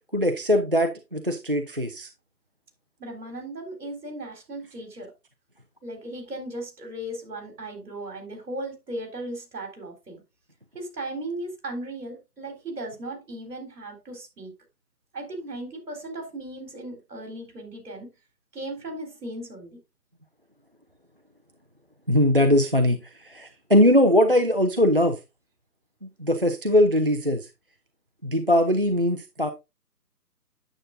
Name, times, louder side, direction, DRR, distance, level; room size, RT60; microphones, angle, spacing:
voice 1, 0.1-2.1 22.1-25.2 26.0-27.5 28.2-29.5, left 1 dB, 35° right, 0.5 m, -21 dB
voice 2, 3.0-5.1 5.8-10.2 10.7-14.5 15.1-18.1 18.5-19.8, right 1 dB, 65° right, 4.0 m, -36 dB
9.0 x 7.6 x 2.6 m
figure-of-eight pair, 165°, 49 cm